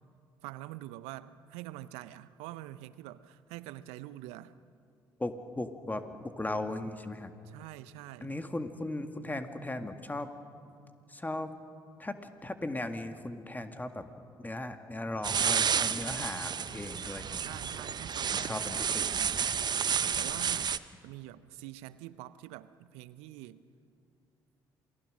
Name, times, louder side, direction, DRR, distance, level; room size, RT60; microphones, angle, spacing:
voice 1, 0.4-4.6 7.4-8.3 17.4-19.5 20.2-20.8 21.0-23.6, right 15 dB, 75° right, 16 dB, 0.7 m, -45 dB
voice 2, 5.2-7.3 8.2-10.3 11.1-11.6 12.0-14.1 14.4-17.6 18.3-19.1, left 2 dB, 15° left, 8 dB, 1.9 m, -37 dB
sound 1, 15.2-20.8, right 7 dB, 40° right, 0.8 m, -31 dB
28.0 x 19.0 x 6.4 m, 2.5 s
hypercardioid pair, 50°, 11 cm